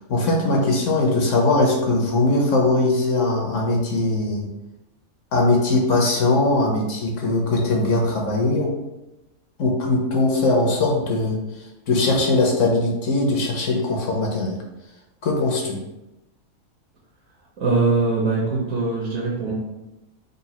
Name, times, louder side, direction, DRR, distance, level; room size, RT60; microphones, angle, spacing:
voice 1, 0.1-4.5 5.3-8.7 9.6-11.4 11.9-14.6 15.2-15.8, left 2 dB, 65° left, 0 dB, 0.9 m, -20 dB
voice 2, 17.6-19.5, right 3 dB, 65° right, -4 dB, 1.2 m, -22 dB
3.9 x 2.2 x 4.1 m, 0.99 s
omnidirectional pair, 1.5 m